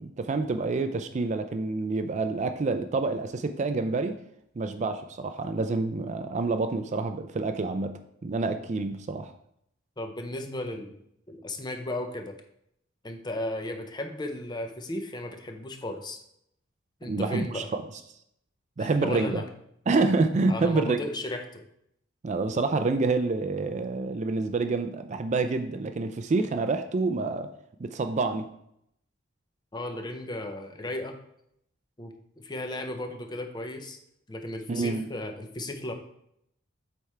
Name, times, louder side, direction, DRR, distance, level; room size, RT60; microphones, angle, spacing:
voice 1, 0.0-4.2 4.6-9.3 17.0-17.8 18.8-19.4 19.9-21.0 22.2-27.5 27.8-28.4 34.7-35.1, right 3 dB, 35° right, 8 dB, 0.4 m, -27 dB
voice 2, 10.0-11.0 11.3-12.3 13.0-16.2 17.0-17.7 18.8-19.5 20.5-21.6 29.7-31.2 32.0-34.0 34.3-35.9, left 1 dB, 20° left, 5 dB, 0.7 m, -35 dB
7.9 x 3.5 x 4.3 m, 0.74 s
head